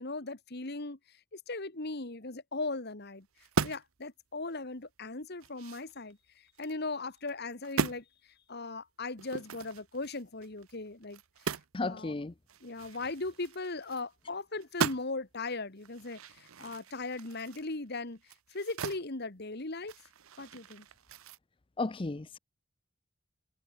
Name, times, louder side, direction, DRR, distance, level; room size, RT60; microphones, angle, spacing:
voice 1, 0.0-3.3 3.6-8.1 8.5-11.2 11.8-12.1 12.6-18.2 18.5-19.9 20.4-20.9, left 3 dB, 50° left, 1.7 m, -38 dB
sound 1, 3.4-4.0 4.4-4.6 5.0-6.8 7.2-7.4 7.6-8.0 9.2-11.8 12.1-12.2 12.5-14.3 14.6-15.3 15.8-19.1 19.4-21.4, right 5 dB, 85° right, 0.8 m, -38 dB
voice 2, 11.7-12.3 21.8-22.4, left 3 dB, 25° left, 0.5 m, -34 dB
head